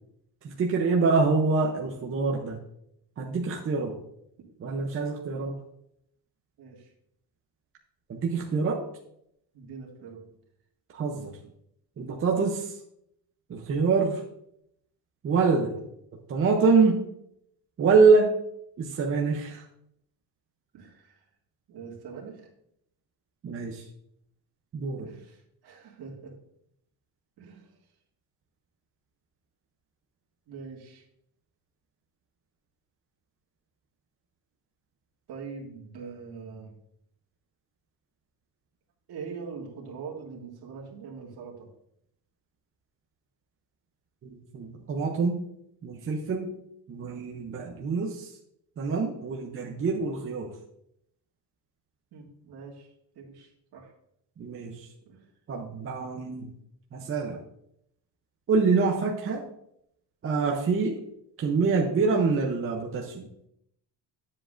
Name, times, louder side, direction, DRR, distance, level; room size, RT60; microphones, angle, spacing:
voice 1, 0.4-2.6 3.2-4.0 4.6-5.6 8.1-8.8 10.9-11.3 12.0-12.8 13.5-14.2 15.2-15.8 16.3-17.0 17.8-18.3 18.8-19.6 23.4-23.8 24.7-25.1 44.2-45.4 45.8-46.5 46.9-48.3 48.8-50.5 54.4-54.9 55.5-56.5 56.9-57.4 58.5-59.4 60.2-61.0 61.4-63.3, right 4 dB, 30° right, 0 dB, 0.7 m, -25 dB
voice 2, 6.6-6.9 9.5-10.3 20.7-21.2 21.7-22.5 25.0-26.3 27.4-27.8 30.5-31.1 35.3-36.8 39.1-41.7 52.1-53.9 55.1-55.3, right 5 dB, 60° right, -1 dB, 2.0 m, -43 dB
9.9 x 7.5 x 2.5 m, 0.75 s
cardioid pair, 175°, 44 cm